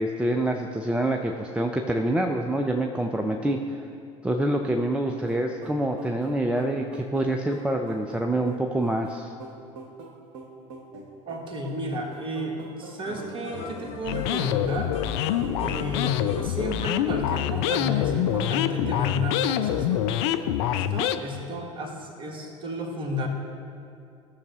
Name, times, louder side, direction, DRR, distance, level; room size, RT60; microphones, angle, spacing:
voice 1, 0.0-3.6 4.2-9.3, right 1 dB, 5° right, 3 dB, 0.5 m, -26 dB
sound 1, 5.3-20.4, right 3 dB, 55° right, 1.1 m, -44 dB
voice 2, 11.3-14.9 15.6-20.1 20.6-23.3, left 1 dB, 30° right, 1 dB, 1.7 m, -32 dB
sound 2, 13.1-14.6 14.9-17.1, left 6 dB, 40° left, 1.3 m, -40 dB
sound 3, 14.0-21.2, left 11 dB, 55° left, 0.4 m, -26 dB
16.5 x 6.5 x 3.2 m, 2.5 s
figure-of-eight pair, 65°, 17 cm